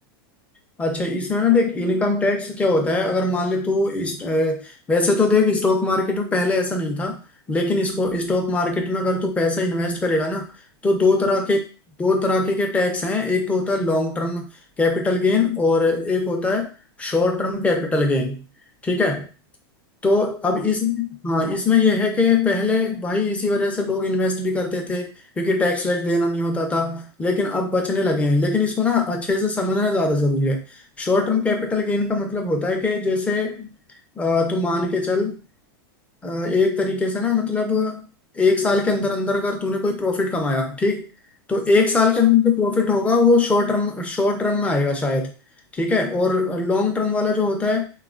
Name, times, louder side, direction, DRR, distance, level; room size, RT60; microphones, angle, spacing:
voice 1, 0.8-7.2 7.5-10.5 10.8-11.6 12.0-14.5 14.8-16.7 17.0-18.4 18.8-19.3 20.0-30.6 31.0-33.7 34.2-35.4 36.2-38.0 38.3-41.1 41.5-45.3 45.7-47.9, left 3 dB, 10° left, 3 dB, 0.5 m, -21 dB
3.5 x 2.3 x 2.4 m, 0.34 s
supercardioid pair, 145°, 12 cm